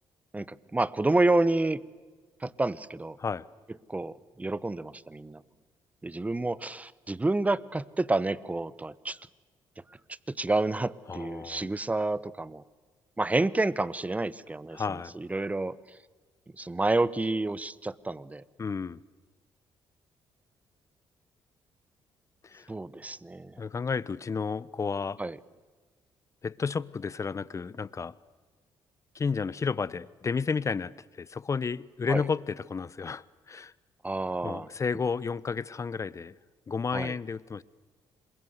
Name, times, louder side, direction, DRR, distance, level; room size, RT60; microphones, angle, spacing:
voice 1, 0.3-1.8 2.4-3.2 3.9-5.4 6.0-9.2 10.3-12.6 13.2-16.0 16.6-18.4 22.7-23.6 25.2-25.4 32.1-32.2 34.0-34.7 36.9-37.1, right 2 dB, 15° right, 19 dB, 1.0 m, -29 dB
voice 2, 11.1-11.7 14.7-15.1 18.6-19.0 22.4-22.7 23.6-25.2 26.4-28.1 29.1-33.7 34.4-36.3 36.7-37.6, left 5 dB, 35° left, 20 dB, 0.9 m, -32 dB
27.5 x 22.0 x 8.1 m, 1.4 s
supercardioid pair, 70°, 9 cm